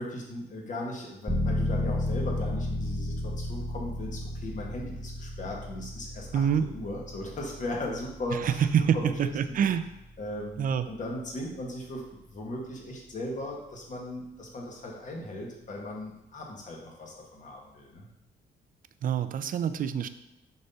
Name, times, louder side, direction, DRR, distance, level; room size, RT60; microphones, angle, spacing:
voice 1, 0.0-6.5 6.7-8.7 8.9-9.3 10.2-18.1, left 1 dB, 45° left, -1 dB, 1.8 m, -37 dB
sound 1, 1.3-11.8, left 1 dB, 10° left, 1.1 m, -34 dB
voice 2, 6.3-6.7 8.3-9.8 10.6-10.9 19.0-20.1, right 8 dB, 50° right, 12 dB, 0.5 m, -26 dB
6.7 x 4.3 x 5.4 m, 0.88 s
cardioid pair, 105°, 18 cm